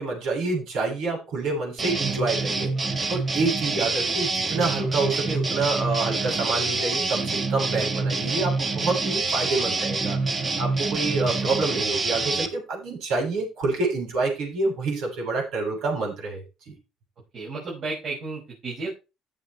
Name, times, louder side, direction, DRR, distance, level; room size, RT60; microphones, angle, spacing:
voice 1, 0.0-2.7 3.1-10.2 10.6-16.8, right 3 dB, 70° right, 0 dB, 7.9 m, -27 dB
sound 1, 1.8-12.5, right 3 dB, 30° right, 1.5 m, -26 dB
voice 2, 17.3-18.9, right 3 dB, 50° right, -5 dB, 6.3 m, -33 dB
15.5 x 7.9 x 3.3 m, 0.29 s
cardioid pair, 115°, 0 cm